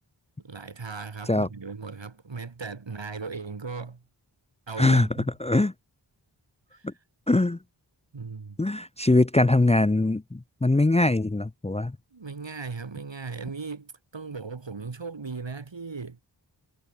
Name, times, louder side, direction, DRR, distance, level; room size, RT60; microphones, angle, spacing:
voice 1, 0.4-4.0 4.7-5.3 6.7-6.9 8.1-8.6 12.1-16.2, right 4 dB, 70° right, 4.5 m, -37 dB
voice 2, 5.4-5.7 6.8-6.9 7.3-7.6 8.6-12.0, left 2 dB, 15° left, 0.7 m, -22 dB
cardioid pair, 45°, 45 cm